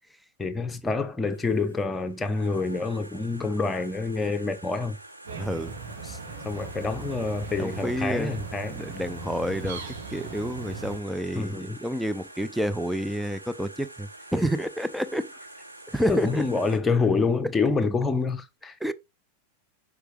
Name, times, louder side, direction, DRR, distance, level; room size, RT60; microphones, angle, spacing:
voice 1, 0.4-5.0 6.0-6.2 6.4-8.8 11.3-11.8 16.1-18.8, left 4 dB, 15° left, 1.1 m, -27 dB
sound 1, 1.3-16.8, right 1 dB, 85° right, 2.1 m, -47 dB
sound 2, 5.2-11.0, right 4 dB, 65° right, 2.5 m, -39 dB
voice 2, 5.4-5.7 7.6-8.4 8.7-15.3 15.9-16.4 17.4-17.5 18.8-18.9, equal, ahead, 0.6 m, -29 dB
8.0 x 6.0 x 3.0 m
figure-of-eight pair, 90°, 0 cm